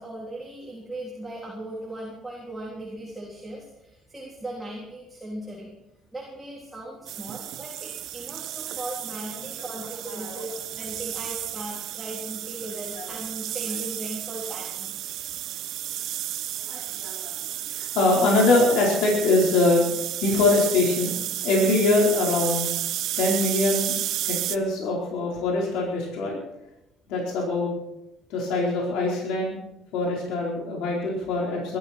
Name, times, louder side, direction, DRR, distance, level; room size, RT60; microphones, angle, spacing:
voice 1, 0.0-5.7 6.1-15.1, right 1 dB, 10° right, -3 dB, 3.5 m, -38 dB
sound 1, 7.1-24.6, right 13 dB, 65° right, 0.8 m, -32 dB
voice 2, 9.3-9.7 10.1-10.4 12.7-13.1 16.6-17.3 17.6-19.9 20.2-21.1 21.4-22.7 23.2-23.9 24.2-26.4 27.1-27.7 28.3-29.6 29.9-31.8, left 2 dB, 85° left, -3 dB, 4.6 m, -23 dB
22.5 x 13.5 x 4.6 m, 0.90 s
cardioid pair, 145°, 0 cm